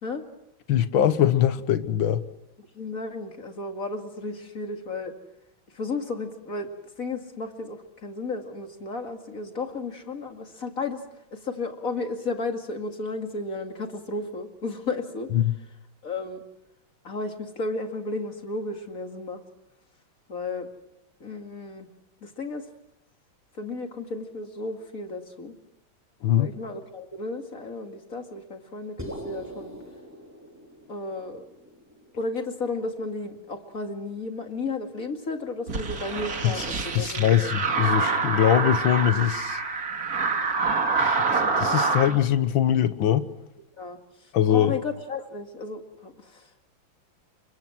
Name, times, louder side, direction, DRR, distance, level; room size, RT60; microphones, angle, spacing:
voice 1, 0.7-2.2 15.3-15.5 26.2-26.5 36.4-36.6 37.0-39.6 40.9-43.3 44.3-44.7, left 10 dB, 75° left, 12 dB, 1.9 m, -22 dB
voice 2, 2.7-5.1 5.7-6.7 7.0-11.0 11.3-15.3 16.0-16.4 17.0-19.4 20.3-20.7 21.2-21.9 22.2-22.7 23.5-25.5 26.4-29.7 30.9-31.5 32.1-37.5 43.8-46.5, left 3 dB, 40° left, 4 dB, 2.5 m, -33 dB
Tunnel Drip Hit, 29.0-33.4, equal, 5° right, 4.2 m, -43 dB
sound 1, 35.7-42.1, right 4 dB, 45° right, 2.4 m, -26 dB
30.0 x 24.5 x 6.1 m, 0.84 s
omnidirectional pair, 2.2 m